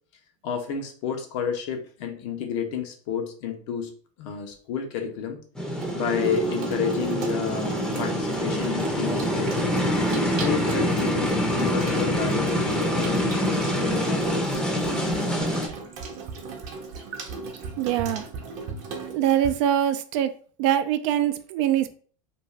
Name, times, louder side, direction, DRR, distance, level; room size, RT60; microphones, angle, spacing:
voice 1, 0.4-3.9 4.2-5.4 5.9-9.6 10.2-15.0, left 7 dB, 65° left, 3 dB, 0.8 m, -31 dB
sound 1, 5.6-15.7, equal, 5° left, 0.6 m, -26 dB
Water tap faucet / Sink (filling or washing), 5.7-19.5, right 4 dB, 50° right, 0.8 m, -35 dB
voice 2, 17.8-18.2 19.1-20.3 20.6-21.9, right 11 dB, 70° right, 10 dB, 0.4 m, -23 dB
2.6 x 2.3 x 3.2 m, 0.43 s
supercardioid pair, 125°, 16 cm